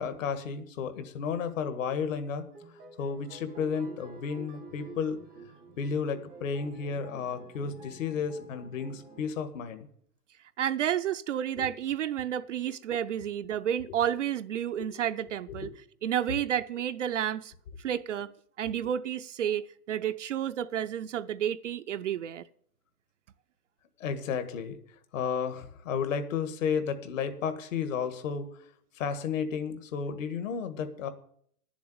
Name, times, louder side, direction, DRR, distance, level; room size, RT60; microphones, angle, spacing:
voice 1, 0.0-2.4 3.0-5.2 5.8-9.9 11.6-11.7 14.8-14.9 15.6-15.7 24.0-24.8 25.1-28.5 28.9-31.1, left 6 dB, 50° left, 1.8 m, -32 dB
sound 1, 2.5-9.3, right 4 dB, ahead, 0.4 m, -50 dB
voice 2, 10.6-15.7 16.0-17.5 17.8-18.3 18.6-22.5, right 10 dB, 50° right, 0.5 m, -31 dB
11.0 x 7.2 x 9.3 m
hypercardioid pair, 155°, 48 cm